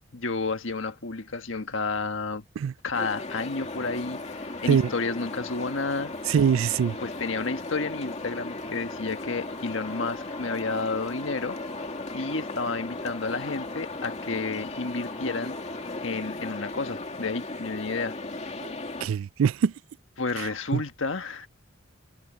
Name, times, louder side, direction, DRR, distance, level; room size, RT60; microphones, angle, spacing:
voice 1, 0.0-2.4 2.8-6.1 7.0-11.6 12.1-15.6 16.0-18.1 20.2-21.5, left 3 dB, 75° left, 1.5 m, -31 dB
sound 1, 2.9-19.1, left 2 dB, 35° left, 2.5 m, -36 dB
sound 2, 3.6-16.0, left 1 dB, 5° left, 5.6 m, -50 dB
voice 2, 6.3-7.0 18.6-18.7 19.0-19.7 20.4-20.8, right 7 dB, 90° right, 0.3 m, -23 dB
head